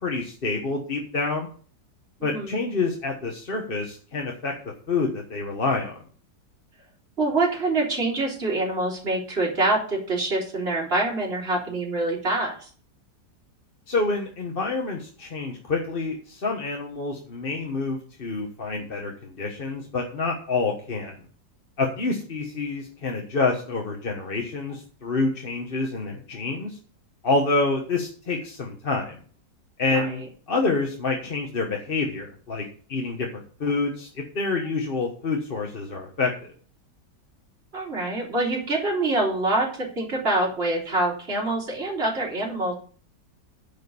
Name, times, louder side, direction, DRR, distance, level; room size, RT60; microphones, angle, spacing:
voice 1, 0.0-1.5 2.2-4.5 4.9-6.0 13.9-21.1 21.8-26.8 27.2-29.2 29.8-30.2 30.5-36.5, left 3 dB, 35° left, 1 dB, 1.3 m, -27 dB
voice 2, 2.2-2.6 7.2-12.7 29.9-30.2 37.7-42.7, right 2 dB, 35° right, -4 dB, 3.5 m, -25 dB
10.5 x 5.3 x 6.9 m, 0.43 s
omnidirectional pair, 1.9 m